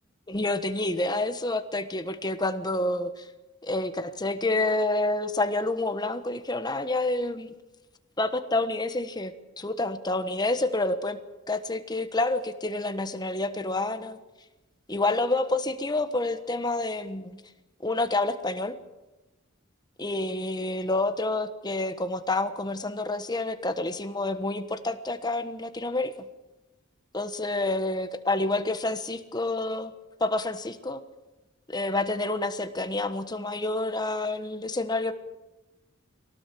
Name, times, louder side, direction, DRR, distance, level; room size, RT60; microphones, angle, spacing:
voice 1, 0.3-3.2 3.6-7.6 8.2-11.2 11.5-14.2 14.9-17.4 17.8-18.7 20.0-26.1 27.1-29.9 30.2-31.0 31.7-35.1, left 2 dB, 20° left, 9 dB, 1.3 m, -28 dB
24.0 x 17.5 x 7.7 m, 1.1 s
head